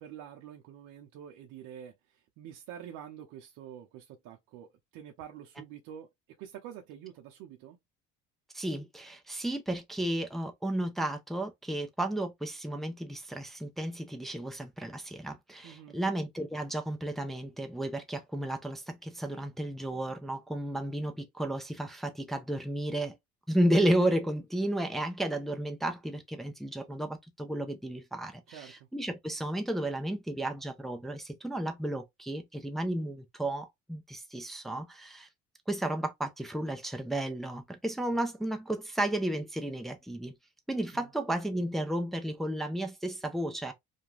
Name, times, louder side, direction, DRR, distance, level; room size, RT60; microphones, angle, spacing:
voice 1, 0.0-6.1 6.4-7.8 15.6-16.0 28.5-28.9 38.1-38.2 40.9-41.1, right 9 dB, 75° right, 0.6 m, -47 dB
voice 2, 8.5-23.2 23.5-35.3 35.7-40.3 40.7-43.7, right 1 dB, ahead, 0.4 m, -33 dB
2.4 x 2.2 x 3.0 m
cardioid pair, 115°, 31 cm